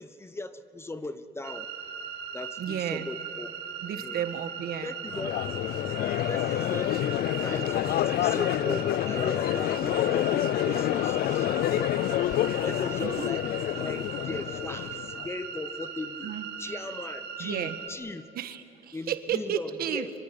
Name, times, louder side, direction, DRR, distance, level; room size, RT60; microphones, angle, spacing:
voice 1, 0.0-1.7 2.3-3.5 3.9-4.2 4.8-5.4 6.1-7.0 7.4-11.9 12.6-13.5 13.7-16.3 16.6-18.3 18.9-20.1, left 2 dB, 15° left, 12 dB, 1.0 m, -38 dB
sound 1, 1.4-17.9, right 7 dB, 85° right, 2.0 m, -39 dB
voice 2, 2.6-3.1 3.8-4.9 13.0-13.3 16.2-16.5 17.4-17.8 18.3-20.1, right 10 dB, 65° right, 9 dB, 1.5 m, -32 dB
Crowd, 5.1-15.3, left 13 dB, 65° left, 0.5 m, -28 dB
24.5 x 23.0 x 9.1 m, 2.7 s
cardioid pair, 110°, 17 cm